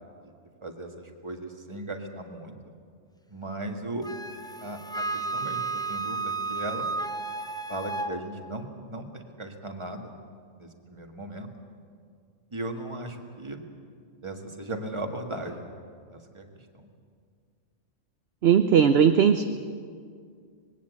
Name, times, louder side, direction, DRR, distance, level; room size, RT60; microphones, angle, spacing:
voice 1, 0.6-2.6 3.3-4.1 4.6-6.9 7.7-10.1 10.6-11.5 12.5-13.6 14.2-15.6 16.1-16.5 16.7-16.9, right 1 dB, 25° right, 3 dB, 1.8 m, -37 dB
Wind instrument woodwind instrument, 4.0-8.1, right 3 dB, 5° left, 0.5 m, -32 dB
voice 2, 18.4-19.4, right 8 dB, 60° right, 9 dB, 0.9 m, -18 dB
20.5 x 17.5 x 8.3 m, 2.1 s
omnidirectional pair, 1.3 m